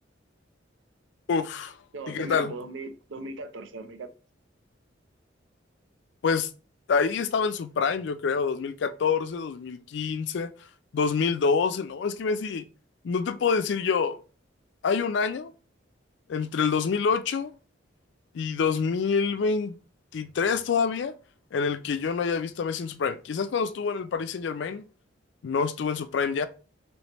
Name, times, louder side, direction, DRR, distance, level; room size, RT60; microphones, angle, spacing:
voice 1, 1.3-1.8 2.1-2.5 6.2-6.5 6.9-10.5 10.9-12.6 13.0-14.2 14.8-15.5 16.3-17.5 18.3-19.8 20.1-21.1 21.5-24.9 25.4-26.5, left 5 dB, 65° left, 0.4 m, -26 dB
voice 2, 1.9-4.1, right 2 dB, 85° right, 0.5 m, -38 dB
3.2 x 3.0 x 3.0 m
head